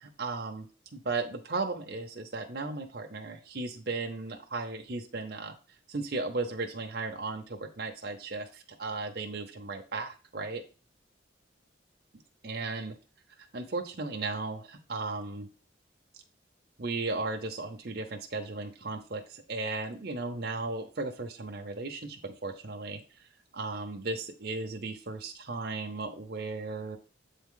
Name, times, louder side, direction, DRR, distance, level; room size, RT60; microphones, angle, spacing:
voice 1, 0.0-5.5 5.9-10.6 12.4-13.0 13.4-15.5 16.8-23.0 23.5-27.0, right 3 dB, 55° right, 3 dB, 0.8 m, -36 dB
8.2 x 3.6 x 3.8 m, 0.36 s
head